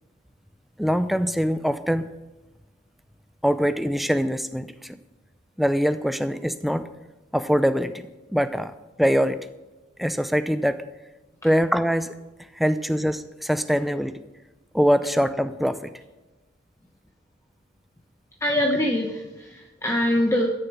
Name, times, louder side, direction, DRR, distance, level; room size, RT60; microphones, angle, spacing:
voice 1, 0.8-2.1 3.4-5.0 5.6-6.9 7.3-8.7 9.0-9.4 10.0-10.8 11.4-12.1 12.6-14.2 14.7-15.9, equal, ahead, 11 dB, 0.5 m, -23 dB
voice 2, 18.4-20.5, left 1 dB, 15° left, 0 dB, 0.9 m, -23 dB
13.0 x 6.9 x 7.2 m, 1.1 s
head